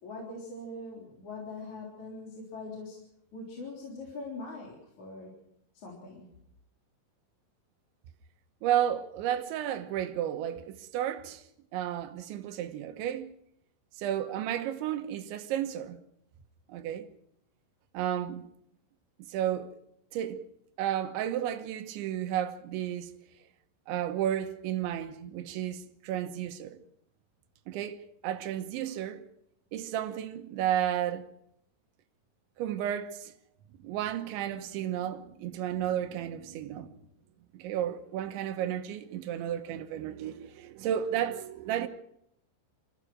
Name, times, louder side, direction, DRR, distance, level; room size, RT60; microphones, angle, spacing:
voice 1, 0.0-3.0 3.3-5.3 5.7-6.3, left 2 dB, 45° left, 4.7 m, -42 dB
voice 2, 8.6-11.4 11.7-13.3 14.0-16.0 16.7-17.1 18.0-18.5 19.3-19.7 20.1-20.4 20.8-23.1 23.9-26.8 27.7-29.3 29.7-31.3 32.6-33.3 33.8-36.9 37.5-41.9, right 11 dB, 90° right, 3.5 m, -32 dB
27.0 x 15.5 x 6.2 m
omnidirectional pair, 5.2 m